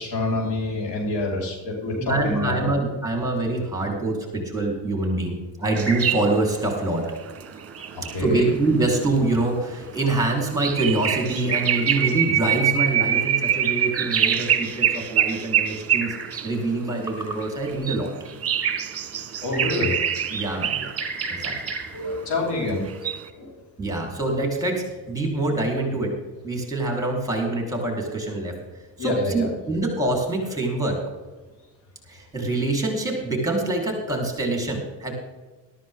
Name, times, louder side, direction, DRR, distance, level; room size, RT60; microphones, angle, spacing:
voice 1, 0.0-2.7 7.9-8.5 19.4-20.0 21.9-23.5 29.0-29.5, left 2 dB, 75° left, -1 dB, 5.0 m, -27 dB
voice 2, 2.0-7.0 8.2-16.2 16.4-18.1 20.3-20.9 21.4-21.6 23.8-26.1 26.4-28.5 29.0-31.0 32.1-35.1, right 2 dB, 10° right, 0 dB, 4.2 m, -25 dB
sound 1, 5.8-16.5 17.1-22.0 22.9-23.3, right 9 dB, 35° right, 1.4 m, -25 dB
13.5 x 13.0 x 3.8 m, 1.2 s
cardioid pair, 100°, 42 cm